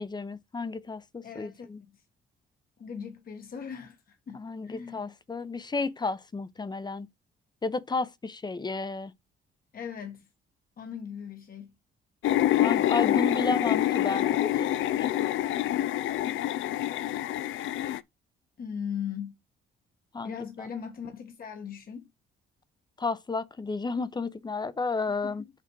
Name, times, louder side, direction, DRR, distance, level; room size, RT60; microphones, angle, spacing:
voice 1, 0.0-1.8 4.3-7.1 7.6-9.1 12.6-15.1 20.1-20.7 23.0-25.4, left 3 dB, 20° left, 0.7 m, -32 dB
voice 2, 1.2-2.0 2.8-5.1 9.7-10.3 10.8-11.8 18.6-19.4 20.2-22.1 25.2-25.5, left 7 dB, 45° left, 1.2 m, -39 dB
sound 1, 12.2-18.0, left 13 dB, 80° left, 0.5 m, -26 dB
5.9 x 5.8 x 4.6 m
cardioid pair, 90°, 20 cm